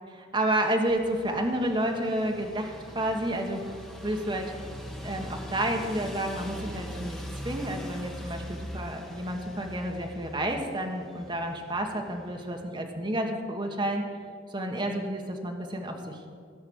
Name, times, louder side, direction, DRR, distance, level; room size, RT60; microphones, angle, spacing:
voice 1, 0.3-3.7 4.0-4.6 5.0-14.1 14.5-16.2, right 1 dB, 25° right, 2 dB, 1.2 m, -30 dB
sound 1, 0.9-12.6, equal, ahead, 1.0 m, -42 dB
15.0 x 5.8 x 7.7 m, 2.2 s
head